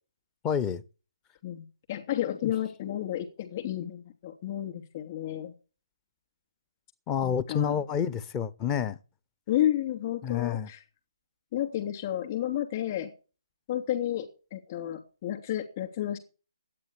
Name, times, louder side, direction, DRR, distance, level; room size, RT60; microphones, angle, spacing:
voice 1, 0.4-0.8 7.1-9.0 10.2-10.7, left 8 dB, 15° left, 0.7 m, -28 dB
voice 2, 1.4-5.5 7.2-7.7 9.5-10.8 11.5-13.1 13.7-14.3 14.5-16.2, left 12 dB, 35° left, 3.0 m, -31 dB
11.5 x 9.3 x 8.3 m
figure-of-eight pair, 145°, 2 cm